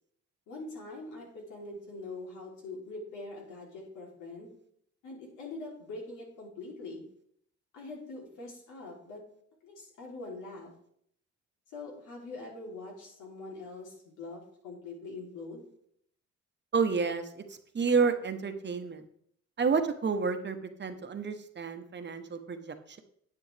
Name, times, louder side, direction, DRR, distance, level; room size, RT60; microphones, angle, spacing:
voice 1, 0.5-4.5 5.0-7.0 7.7-9.2 9.6-10.7 11.7-15.7, left 2 dB, 90° left, -2 dB, 3.3 m, -43 dB
voice 2, 16.7-19.0 19.6-23.0, right 5 dB, 35° right, 7 dB, 1.1 m, -30 dB
9.7 x 8.8 x 3.4 m, 0.68 s
cardioid pair, 90°, 30 cm